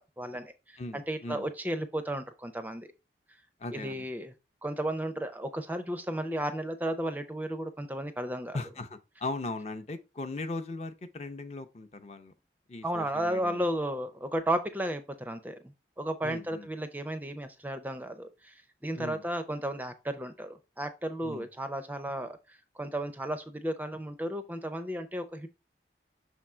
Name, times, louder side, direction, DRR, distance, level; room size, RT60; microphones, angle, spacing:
voice 1, 0.2-2.9 3.7-4.3 4.6-8.6 12.8-18.5 18.8-25.5, right 1 dB, 10° right, 0.4 m, -34 dB
voice 2, 0.8-1.5 3.6-4.1 8.5-12.3 12.7-13.6 16.2-16.7 18.9-19.2 21.2-21.5, left 2 dB, 35° left, 0.6 m, -38 dB
6.0 x 3.7 x 4.3 m
head